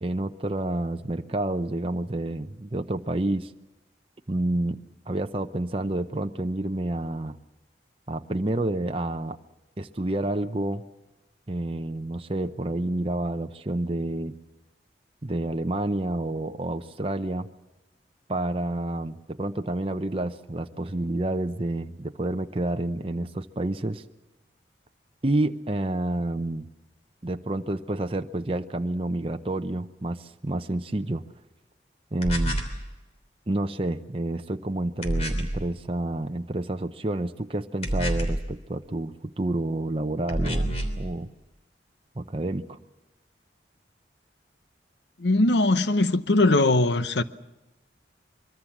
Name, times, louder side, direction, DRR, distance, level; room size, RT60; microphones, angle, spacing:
voice 1, 0.0-3.5 4.3-4.8 5.1-7.4 8.1-9.4 9.8-10.8 11.5-14.3 15.2-17.5 18.3-24.0 25.2-26.6 27.2-31.2 32.1-32.6 33.5-41.3 42.2-42.8, right 1 dB, 30° right, 0.7 m, -29 dB
sound 1, 32.2-32.8 35.0-35.6 37.8-38.5 40.3-41.0, right 1 dB, 35° left, 3.1 m, -27 dB
voice 2, 45.2-47.2, left 2 dB, 75° left, 0.9 m, -21 dB
24.0 x 23.0 x 7.3 m
head